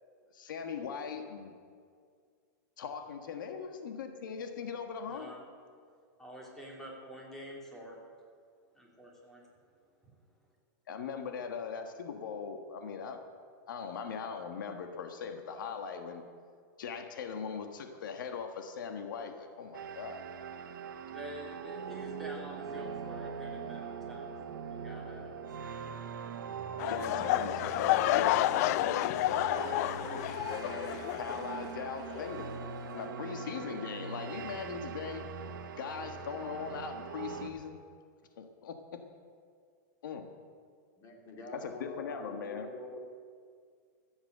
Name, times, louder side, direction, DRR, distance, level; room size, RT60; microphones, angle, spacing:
voice 1, 0.3-1.5 2.8-5.3 10.9-13.2 13.7-16.2 16.8-20.2 26.9-28.5 28.8-29.0 29.2-29.5 31.2-32.6 32.9-35.3 35.8-37.8 38.4-38.8 40.0-40.3 41.5-42.7, left 6 dB, 90° left, 6 dB, 1.4 m, -40 dB
voice 2, 5.1-5.4 6.2-8.0 8.7-9.4 21.1-25.3, equal, 5° left, -3 dB, 3.0 m, -47 dB
sound 1, 19.7-37.5, right 6 dB, 90° right, 1.2 m, -42 dB
sound 2, 26.8-31.8 32.1-32.4 33.0-33.1, left 14 dB, 55° left, 0.4 m, -30 dB
voice 3, 41.0-43.0, left 2 dB, 30° left, 1 dB, 2.7 m, -45 dB
15.0 x 8.1 x 7.8 m, 2.1 s
supercardioid pair, 145°, 10 cm